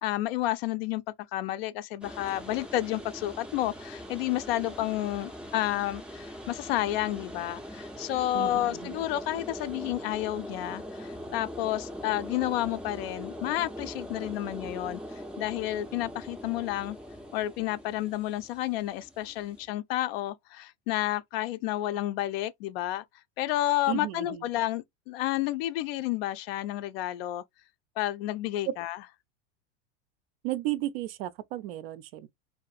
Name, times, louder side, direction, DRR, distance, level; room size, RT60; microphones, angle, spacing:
voice 1, 0.0-1.0 1.3-17.0 17.3-23.0 23.4-27.4 28.0-29.0, left 15 dB, 55° left, 0.4 m, -31 dB
sound 1, 2.0-19.7, equal, 5° right, 0.4 m, -42 dB
voice 2, 8.3-9.0 23.9-24.4 28.7-28.8 30.4-32.3, right 14 dB, 55° right, 0.5 m, -34 dB
2.5 x 2.5 x 2.4 m
hypercardioid pair, 100°, 35 cm